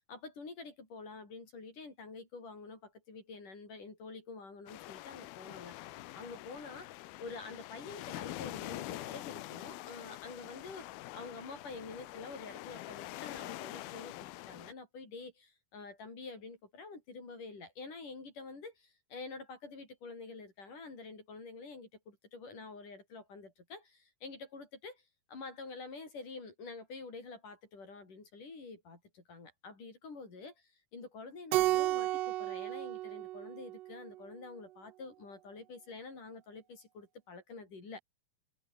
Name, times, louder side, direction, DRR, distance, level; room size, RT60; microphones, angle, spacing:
voice 1, 0.1-25.0 25.3-38.0, left 4 dB, 50° left, 7.6 m, -48 dB
sound 1, 4.7-14.7, left 17 dB, 75° left, 2.5 m, -45 dB
Keyboard (musical), 31.5-34.1, right 16 dB, 75° right, 2.1 m, -33 dB
omnidirectional pair, 4.7 m